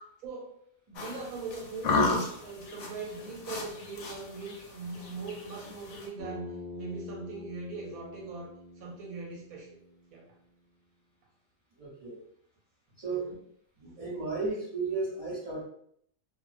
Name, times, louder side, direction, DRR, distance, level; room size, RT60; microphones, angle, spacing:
voice 1, 0.2-0.5 0.9-9.8 10.1-10.2 13.1-13.4, right 3 dB, 90° right, 0 dB, 1.2 m, -41 dB
sound 1, 0.9-6.0, left 3 dB, 65° left, 0.8 m, -33 dB
Bass guitar, 6.2-10.5, left 2 dB, 60° right, 0.9 m, -45 dB
voice 2, 11.8-12.2 13.0-13.3 13.8-15.6, right 3 dB, 30° right, -8 dB, 1.0 m, -34 dB
2.5 x 2.0 x 2.4 m, 0.67 s
omnidirectional pair, 1.5 m